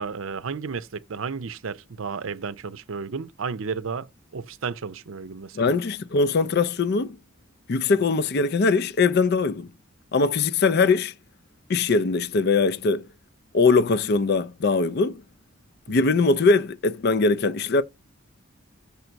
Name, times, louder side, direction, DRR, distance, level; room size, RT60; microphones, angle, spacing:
voice 1, 0.0-5.7 15.9-16.1, right 5 dB, 70° right, 0.6 m, -33 dB
voice 2, 5.6-7.2 7.7-9.7 10.1-11.1 11.7-13.1 13.5-15.2 15.9-17.8, left 4 dB, 50° left, 0.4 m, -21 dB
6.9 x 4.5 x 3.9 m
head